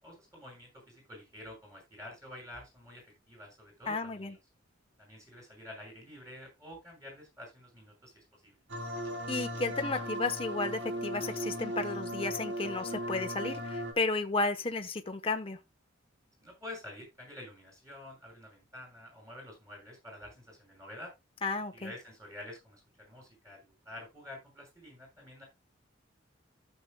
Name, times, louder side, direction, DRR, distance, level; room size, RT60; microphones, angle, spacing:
voice 1, 0.0-4.4 5.0-8.6 16.4-21.1 21.7-25.4, left 1 dB, 15° right, 6.3 m, -49 dB
voice 2, 3.9-4.3 9.3-15.6 21.4-21.9, left 3 dB, 30° left, 1.0 m, -33 dB
sound 1, 8.7-13.9, equal, 60° right, 3.2 m, -37 dB
14.5 x 6.9 x 2.2 m
head